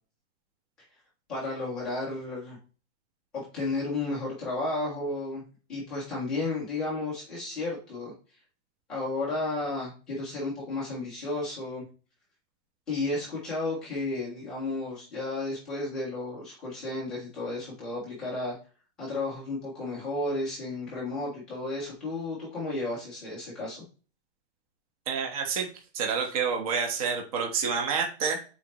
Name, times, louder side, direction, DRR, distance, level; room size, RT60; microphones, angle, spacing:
voice 1, 1.3-2.6 3.3-5.4 5.7-8.1 8.9-11.8 12.9-18.6 19.0-23.8, left 2 dB, ahead, -8 dB, 0.4 m, -33 dB
voice 2, 25.1-25.7 25.9-28.4, right 6 dB, 30° right, 2 dB, 1.1 m, -28 dB
8.5 x 4.2 x 2.9 m, 0.36 s
supercardioid pair, 180°, 34 cm